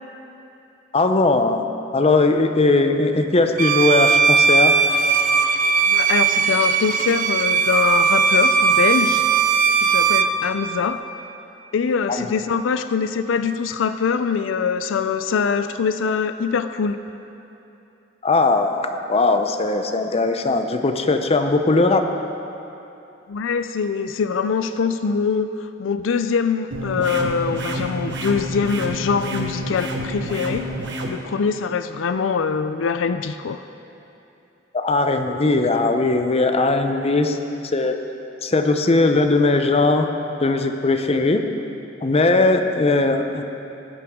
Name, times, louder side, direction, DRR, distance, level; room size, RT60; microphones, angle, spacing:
voice 1, 0.9-1.6 1.9-4.7 12.2-12.3 18.2-22.0 34.7-37.4 37.7-38.0 38.4-40.1 40.4-41.4 42.0-43.4, left 3 dB, 35° left, 6 dB, 0.6 m, -19 dB
Bowed string instrument, 3.6-10.4, right 5 dB, 45° right, 0.5 m, -18 dB
voice 2, 5.9-9.3 9.8-11.0 11.7-17.0 23.3-30.7 31.1-33.6, left 5 dB, 90° left, 10 dB, 0.4 m, -23 dB
sound 1, 26.7-31.1, right 1 dB, 70° right, 1.2 m, -28 dB
19.0 x 8.8 x 3.7 m, 2.9 s
head